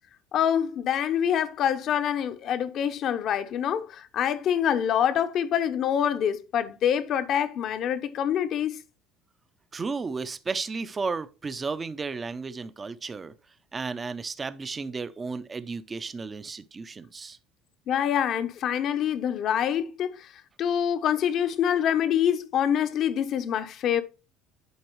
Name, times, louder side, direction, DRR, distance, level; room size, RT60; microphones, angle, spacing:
voice 1, 0.3-8.8 17.9-20.3 20.6-24.0, left 9 dB, 45° left, 0.7 m, -26 dB
voice 2, 9.7-13.3 13.7-17.4, right 4 dB, 20° right, 0.5 m, -33 dB
11.0 x 4.5 x 3.1 m
cardioid pair, 150°, 0 cm